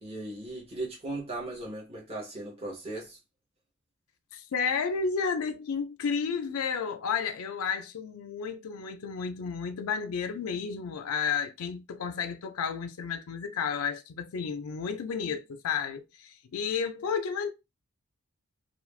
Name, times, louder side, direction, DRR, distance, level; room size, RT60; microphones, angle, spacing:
voice 1, 0.0-3.2, right 2 dB, 25° right, 0.8 m, -37 dB
voice 2, 4.3-17.5, left 6 dB, 75° left, 0.4 m, -32 dB
2.3 x 2.0 x 3.2 m
head